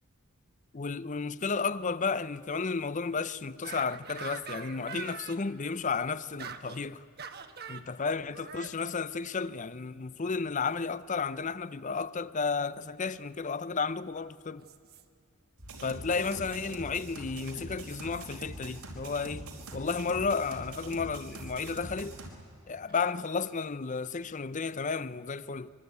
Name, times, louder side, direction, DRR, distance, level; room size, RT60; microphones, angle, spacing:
voice 1, 0.7-7.0 7.7-14.7 15.8-22.2 22.7-25.7, left 4 dB, 35° left, 0.6 m, -33 dB
sound 1, 3.6-5.4 6.4-6.8 7.2-7.9 8.3-8.8 10.6-10.9 13.1-13.2 14.6-15.0 16.2-16.6 17.8-18.3 19.6-20.0 21.3-21.8 22.9-23.1, right 7 dB, 45° right, 1.3 m, -45 dB
sound 2, 15.6-22.3, right 1 dB, 85° right, 4.6 m, -43 dB
25.0 x 23.5 x 9.4 m
head